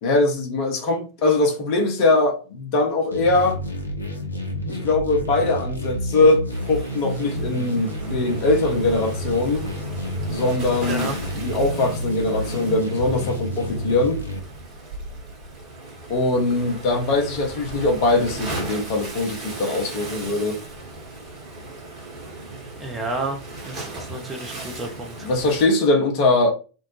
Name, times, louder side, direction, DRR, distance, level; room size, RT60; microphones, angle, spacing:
voice 1, 0.0-3.6 4.7-9.7 10.3-11.1 11.3-14.2 16.1-20.6 25.2-26.5, left 2 dB, 45° left, 0.7 m, -21 dB
sound 1, 3.1-14.4, equal, 85° left, 0.5 m, -30 dB
Waves surf, 6.5-25.6, right 2 dB, 35° right, 1.1 m, -36 dB
voice 2, 10.8-11.2 22.8-25.3, right 2 dB, 15° right, 0.6 m, -31 dB
2.6 x 2.0 x 3.0 m
figure-of-eight pair, 90°, 0 cm